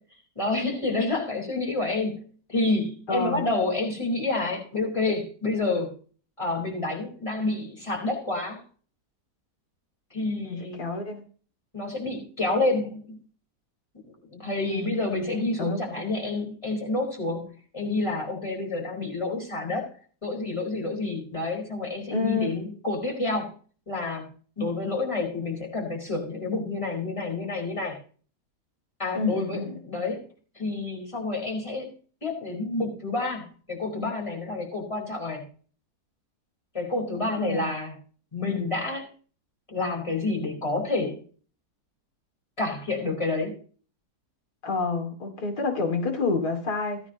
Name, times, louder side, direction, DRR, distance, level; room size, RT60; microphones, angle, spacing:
voice 1, 0.3-2.2 2.5-5.9 6.4-8.6 10.1-10.8 11.7-13.2 14.3-19.9 20.2-23.5 23.9-28.0 29.0-30.3 30.6-31.9 32.2-35.4 36.7-37.9 38.3-39.1 39.7-41.2 42.6-43.5, left 2 dB, 20° left, 1 dB, 4.7 m, -29 dB
voice 2, 3.1-3.4 10.4-11.2 14.7-15.0 15.3-15.8 22.1-22.6 29.1-29.8 37.4-37.7 44.6-47.0, left 4 dB, 80° left, 2 dB, 3.2 m, -29 dB
17.0 x 9.4 x 3.0 m, 0.41 s
omnidirectional pair, 1.7 m